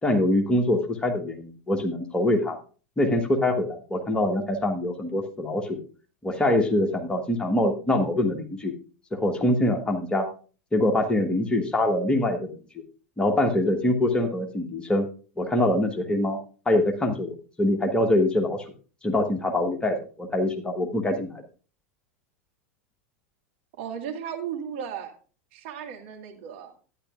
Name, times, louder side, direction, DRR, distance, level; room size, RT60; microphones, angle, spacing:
voice 1, 0.0-2.6 3.0-5.8 6.2-8.7 9.1-10.3 10.7-12.6 13.2-15.0 15.4-16.4 16.7-18.6 19.0-21.4, left 1 dB, 10° left, 3 dB, 1.4 m, -24 dB
voice 2, 23.8-25.1 25.5-26.7, right 8 dB, 55° right, 3 dB, 1.9 m, -35 dB
12.0 x 9.8 x 2.5 m, 0.37 s
figure-of-eight pair, 90°, 8 cm